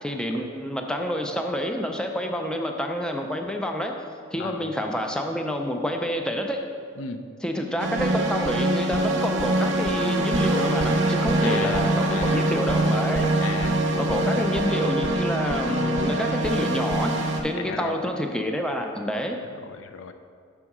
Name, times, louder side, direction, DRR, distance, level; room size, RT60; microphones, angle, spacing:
voice 1, 0.0-3.9 4.3-6.6 7.4-13.4 14.0-17.2 17.4-19.4, equal, 5° left, 3 dB, 0.4 m, -28 dB
voice 2, 4.4-4.7 7.0-7.2 11.4-11.8 12.1-12.5 13.4-13.9 14.3-14.5 17.6-18.0 19.6-20.1, left 5 dB, 85° left, 8 dB, 0.4 m, -35 dB
sound 1, 7.8-17.4, right 1 dB, 85° right, 0.8 m, -24 dB
6.2 x 3.6 x 5.9 m, 2.2 s
head